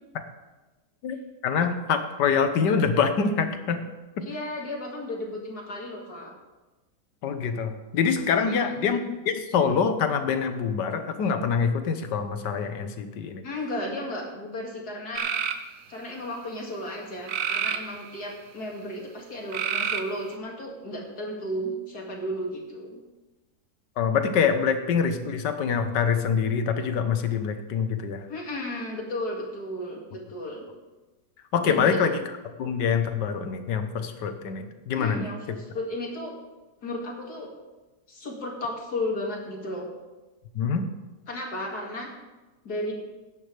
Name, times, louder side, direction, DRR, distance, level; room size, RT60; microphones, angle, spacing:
voice 1, 1.4-3.9 4.2-4.3 7.2-9.0 9.2-13.4 24.0-28.2 31.5-32.2 32.6-35.3 40.5-40.9, left 6 dB, 90° left, 8 dB, 1.6 m, -25 dB
voice 2, 4.2-6.3 8.5-8.8 13.4-15.3 15.9-23.0 28.3-30.7 31.6-32.0 34.9-36.3 36.8-37.5 38.1-39.9 41.3-42.1 42.6-42.9, left 1 dB, 65° left, -1 dB, 2.8 m, -34 dB
sound 1, 15.1-15.6 17.3-18.3 19.5-20.3, right 7 dB, 60° right, 1.1 m, -28 dB
16.0 x 11.0 x 3.4 m, 1.1 s
omnidirectional pair, 1.8 m